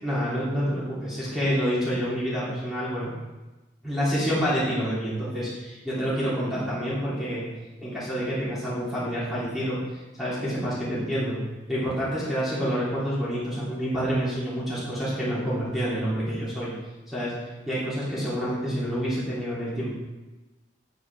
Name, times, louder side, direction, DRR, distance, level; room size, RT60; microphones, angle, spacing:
voice 1, 0.0-3.1 3.8-7.4 7.8-9.8 10.2-11.4 11.7-16.7 17.1-17.3 17.7-19.9, equal, ahead, -10 dB, 3.1 m, -28 dB
9.0 x 8.0 x 3.6 m, 1.1 s
head